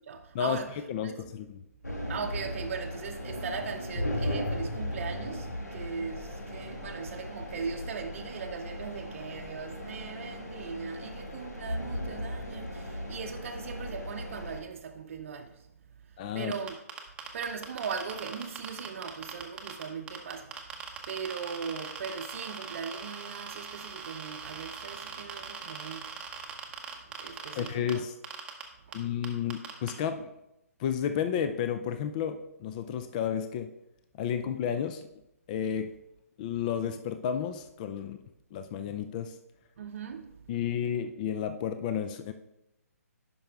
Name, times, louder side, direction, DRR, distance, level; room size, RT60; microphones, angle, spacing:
voice 1, 0.1-1.2 2.1-15.5 16.3-16.8 17.3-20.6 21.1-26.1 27.2-28.1 28.9-29.0 39.8-40.3, right 6 dB, 50° right, 0.7 m, -39 dB
voice 2, 0.9-1.6 16.2-16.5 27.6-28.1 28.9-30.3 30.8-33.7 34.2-35.0 35.5-35.9 36.4-38.2 38.5-39.4 40.5-42.3, left 8 dB, 30° left, 0.4 m, -32 dB
sound 1, 1.8-14.6, left 1 dB, 90° left, 1.8 m, -37 dB
sound 2, 16.5-19.8 20.1-27.9 28.2-28.6 28.9-29.0 29.2-29.9, right 6 dB, 10° right, 0.8 m, -40 dB
10.0 x 5.5 x 3.5 m
figure-of-eight pair, 140°, 9 cm